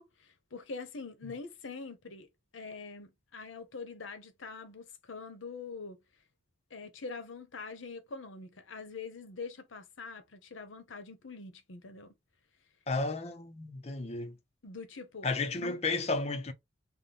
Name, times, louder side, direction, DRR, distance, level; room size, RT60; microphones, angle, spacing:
voice 1, 0.0-2.3 2.5-6.0 6.7-12.1 14.6-15.3 15.5-15.8, left 4 dB, 80° left, 0.8 m, -44 dB
voice 2, 12.9-14.4 15.2-16.5, left 3 dB, 35° left, 0.5 m, -33 dB
3.9 x 2.1 x 3.3 m
head